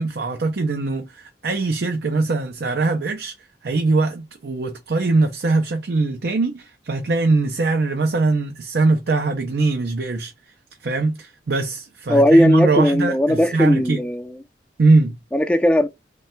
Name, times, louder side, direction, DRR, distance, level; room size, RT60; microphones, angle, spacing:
voice 1, 0.0-3.3 3.6-10.3 10.8-14.0 14.8-15.2, right 3 dB, 70° right, 0.5 m, -21 dB
voice 2, 12.1-14.3 15.3-15.9, left 1 dB, 5° left, 0.3 m, -17 dB
3.2 x 2.3 x 4.2 m
head